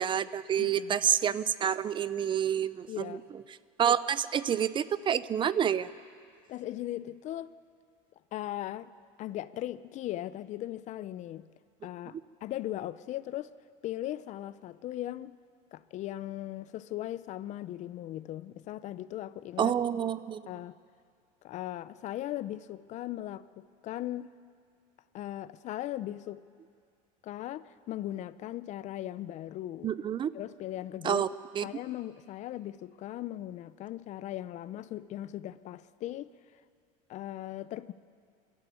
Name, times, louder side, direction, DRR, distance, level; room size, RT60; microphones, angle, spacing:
voice 1, 0.0-3.2 3.8-5.9 19.6-20.4 29.8-30.3 31.0-31.3 31.6-31.7, right 9 dB, 30° right, 0.5 m, -28 dB
voice 2, 0.6-1.0 2.9-3.2 6.5-7.5 8.3-8.9 9.2-11.5 11.8-13.5 13.8-15.3 15.7-19.7 20.5-20.8 21.4-24.3 25.1-26.4 27.2-29.9 30.3-31.2 31.6-36.3 37.1-37.9, left 13 dB, 45° left, 0.6 m, -38 dB
22.5 x 13.5 x 9.2 m
supercardioid pair, 120°, 16 cm